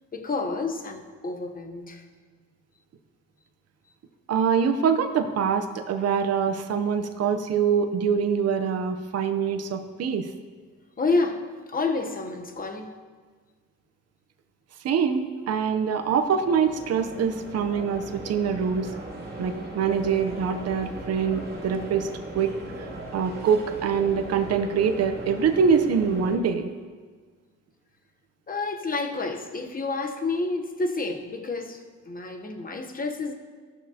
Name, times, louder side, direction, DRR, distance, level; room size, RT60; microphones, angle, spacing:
voice 1, 0.1-2.1 11.0-12.9 28.5-33.3, left 3 dB, 30° left, 5 dB, 1.0 m, -29 dB
voice 2, 4.3-10.3 14.8-18.9 19.4-22.1 22.3-26.7, right 6 dB, 55° right, 7 dB, 0.8 m, -24 dB
sound 1, 15.6-26.4, right 2 dB, 30° right, 2.6 m, -39 dB
15.0 x 6.3 x 2.9 m, 1.5 s
cardioid pair, 90°, 30 cm